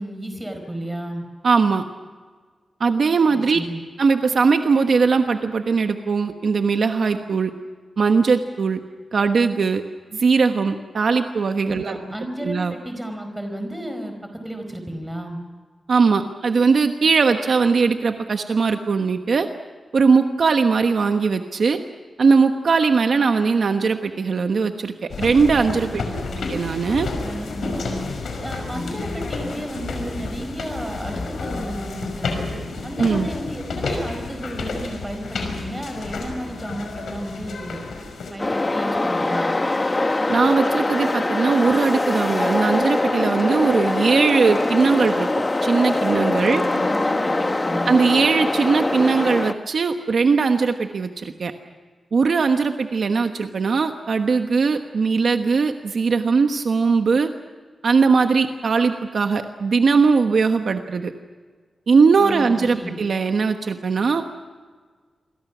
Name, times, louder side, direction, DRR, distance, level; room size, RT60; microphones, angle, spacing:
voice 1, 0.0-1.3 3.3-3.8 11.7-14.2 14.4-15.4 25.9-26.4 27.2-28.1 28.4-32.4 32.8-37.8 38.3-39.5 46.4-47.9 62.2-62.9, equal, 5° right, 5 dB, 4.8 m, -32 dB
voice 2, 1.4-1.8 2.8-3.6 4.0-7.5 8.0-8.8 9.1-9.8 10.1-12.0 12.4-12.7 15.9-19.5 19.9-21.8 22.2-26.0 26.5-27.1 33.0-33.3 40.3-45.3 45.6-46.6 47.9-51.5 52.1-57.3 57.8-61.1 61.9-64.2, right 5 dB, 60° right, 6 dB, 1.2 m, -19 dB
sound 1, 25.1-38.3, left 3 dB, 85° left, 5.5 m, -30 dB
sound 2, 38.4-49.5, left 2 dB, 20° left, 1.1 m, -23 dB
28.0 x 23.0 x 6.1 m, 1.5 s
wide cardioid pair, 165°, 0 cm